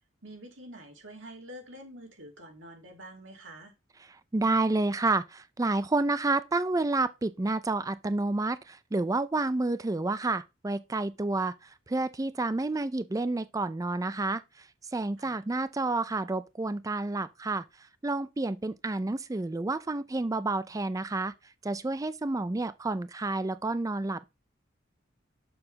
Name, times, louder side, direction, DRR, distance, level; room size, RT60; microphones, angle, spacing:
voice 1, 0.2-3.7 15.2-15.4, right 1 dB, 75° right, 2.8 m, -47 dB
voice 2, 4.3-11.5 11.9-14.4 14.9-17.6 18.0-21.3 21.6-24.2, right 2 dB, 15° right, 0.4 m, -29 dB
7.0 x 4.9 x 5.7 m
head